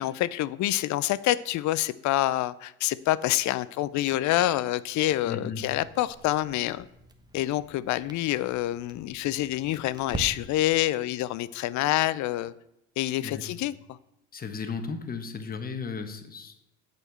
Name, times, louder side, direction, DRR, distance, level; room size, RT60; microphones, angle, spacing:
voice 1, 0.0-6.9 7.3-12.5 13.0-13.7, left 15 dB, 55° left, 17 dB, 0.5 m, -27 dB
voice 2, 5.2-5.7 13.2-13.4 14.3-16.6, left 5 dB, 25° left, 7 dB, 1.2 m, -35 dB
Crackle, 5.6-10.8, right 3 dB, 10° right, 1.0 m, -43 dB
8.3 x 4.4 x 7.1 m, 0.86 s
supercardioid pair, 100°, 34 cm